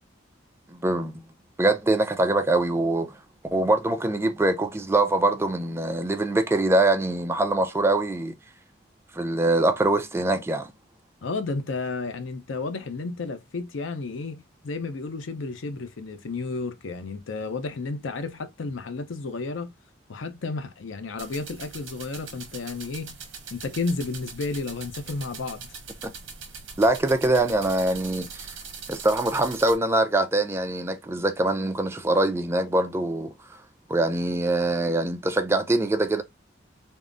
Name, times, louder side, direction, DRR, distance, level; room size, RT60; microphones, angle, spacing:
voice 1, 0.7-1.2 1.6-3.1 3.5-8.3 9.1-10.7 26.8-28.5 28.9-33.3 33.9-36.2, right 2 dB, 15° right, 0.3 m, -23 dB
voice 2, 11.2-19.7 20.1-23.2 23.5-25.7, left 3 dB, 80° left, 0.6 m, -32 dB
sound 1, 21.2-29.8, right 5 dB, 80° right, 0.8 m, -41 dB
3.5 x 2.0 x 2.5 m
head